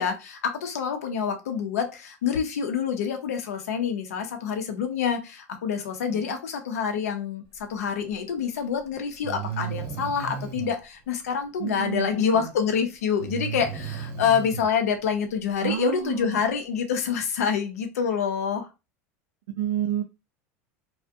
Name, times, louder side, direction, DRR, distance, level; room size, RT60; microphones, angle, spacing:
voice 1, 0.0-18.7, left 7 dB, 90° left, 6 dB, 0.6 m, -27 dB
Breathing, 8.4-8.5 9.2-10.7 13.2-14.7, right 7 dB, 60° right, 0.8 m, -34 dB
voice 2, 11.6-12.5 15.6-16.4 19.6-20.0, right 11 dB, 80° right, 4 dB, 0.4 m, -30 dB
2.4 x 2.1 x 2.5 m, 0.27 s
hypercardioid pair, 100°, 8 cm